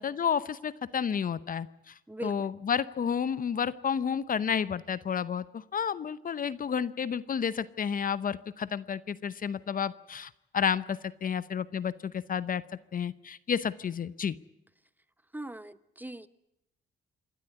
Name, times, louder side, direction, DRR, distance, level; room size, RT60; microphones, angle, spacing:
voice 1, 0.0-1.9 2.2-12.6 12.9-14.4, left 7 dB, 45° left, 17 dB, 0.8 m, -31 dB
voice 2, 2.1-2.5 15.3-16.3, right 1 dB, 10° right, 14 dB, 1.0 m, -40 dB
27.5 x 12.5 x 9.6 m, 0.86 s
cardioid pair, 90°, 20 cm